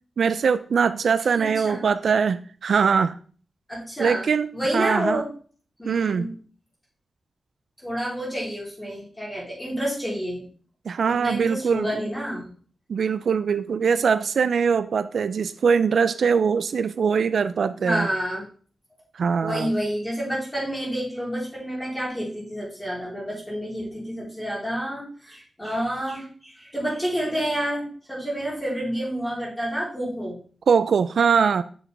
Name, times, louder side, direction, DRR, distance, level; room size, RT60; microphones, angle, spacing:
voice 1, 0.2-3.2 4.0-5.2 5.8-6.3 10.9-11.9 12.9-18.1 19.1-19.7 30.7-31.6, right 6 dB, 75° right, 13 dB, 0.4 m, -22 dB
voice 2, 1.4-1.8 3.7-4.3 4.5-5.3 5.8-6.3 7.8-10.4 11.1-12.5 17.8-18.4 19.4-30.4, equal, 15° left, -7 dB, 3.6 m, -29 dB
7.3 x 6.9 x 3.4 m, 0.42 s
wide cardioid pair, 140°, 0 cm